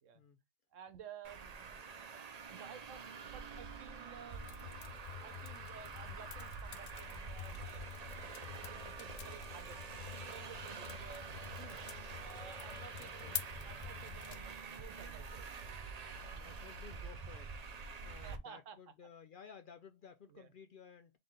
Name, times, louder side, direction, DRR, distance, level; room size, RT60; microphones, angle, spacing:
voice 1, 0.7-7.8 8.1-9.8 10.0-11.3 11.5-11.8 12.2-13.3 13.6-15.6 16.2-16.6 18.2-18.8 20.3-20.5, right 7 dB, 80° right, 1.2 m, -55 dB
Traffic noise roadway noise, 1.2-18.4, right 5 dB, 45° right, 0.6 m, -47 dB
sound 1, 4.3-14.4, left 9 dB, 90° left, 1.0 m, -48 dB
voice 2, 13.0-13.4 16.3-17.5 18.0-21.2, left 6 dB, 60° left, 0.6 m, -56 dB
3.9 x 3.8 x 3.2 m
omnidirectional pair, 1.3 m